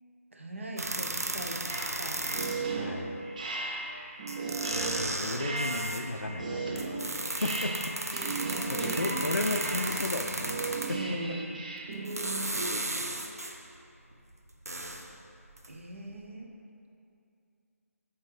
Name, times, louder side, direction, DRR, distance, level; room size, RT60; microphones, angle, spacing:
voice 1, 0.3-1.6 2.0-2.3 8.4-9.1 10.9-11.6 15.7-16.5, right 1 dB, 60° right, 0 dB, 0.8 m, -39 dB
sound 1, 0.8-2.8 3.9-4.0 4.3-6.1 6.8-11.1 11.9-13.7 14.1-15.8 16.1-16.2, right 1 dB, 90° right, 0.4 m, -35 dB
sound 2, 1.7-12.8, right 3 dB, 30° right, 0.5 m, -36 dB
voice 2, 2.8-3.2 4.7-7.0 7.4-7.8 8.2-8.4 8.7-10.6 10.9-11.0, left 2 dB, 80° left, 5 dB, 0.4 m, -34 dB
8.3 x 3.7 x 3.2 m, 2.6 s
figure-of-eight pair, 150°, 8 cm